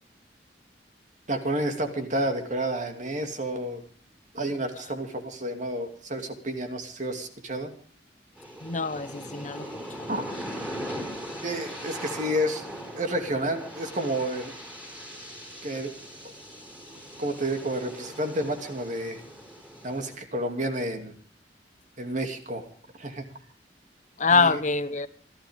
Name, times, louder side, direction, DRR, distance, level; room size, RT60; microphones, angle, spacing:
voice 1, 1.3-3.8 4.3-7.7 10.1-10.3 11.4-12.6 13.0-14.5 15.6-15.9 17.2-19.2 19.8-21.1 22.0-22.7 23.0-23.2 24.3-24.6, right 1 dB, 45° right, 6 dB, 2.7 m, -30 dB
sound 1, 8.4-20.1, equal, 5° right, 6.0 m, -40 dB
voice 2, 8.6-9.7 24.2-25.1, left 4 dB, 45° left, 12 dB, 1.1 m, -24 dB
27.5 x 13.0 x 3.7 m, 0.42 s
head